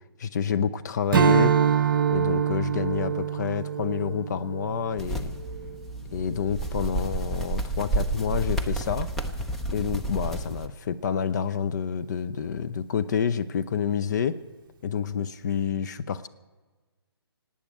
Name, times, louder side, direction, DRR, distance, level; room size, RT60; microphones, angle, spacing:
voice 1, 0.2-1.5 2.1-5.3 6.1-9.1 9.7-14.4 14.8-16.3, left 7 dB, 45° left, 11 dB, 0.6 m, -28 dB
Strum, 1.1-5.8, right 8 dB, 50° right, 0.7 m, -25 dB
sound 1, 5.0-10.7, right 2 dB, ahead, 0.6 m, -30 dB
18.5 x 8.6 x 8.3 m, 1.3 s
figure-of-eight pair, 145°, 14 cm